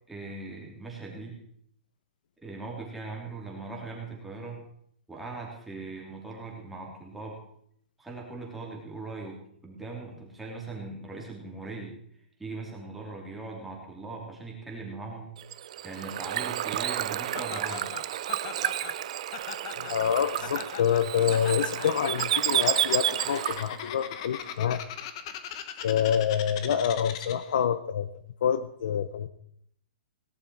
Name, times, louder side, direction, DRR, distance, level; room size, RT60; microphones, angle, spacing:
voice 1, 0.1-1.4 2.4-4.6 5.1-7.4 8.0-12.0 12.4-15.3 15.8-17.9, right 3 dB, 5° right, -2 dB, 2.8 m, -40 dB
Bird / Water, 15.4-23.8, right 12 dB, 40° right, 0.6 m, -30 dB
Laughter, 17.3-27.6, left 9 dB, 30° left, 1.1 m, -40 dB
voice 2, 19.8-24.8 25.8-28.1 28.4-29.3, left 8 dB, 55° left, 13 dB, 0.8 m, -27 dB
18.0 x 11.0 x 4.7 m, 0.68 s
hypercardioid pair, 175°, 5 cm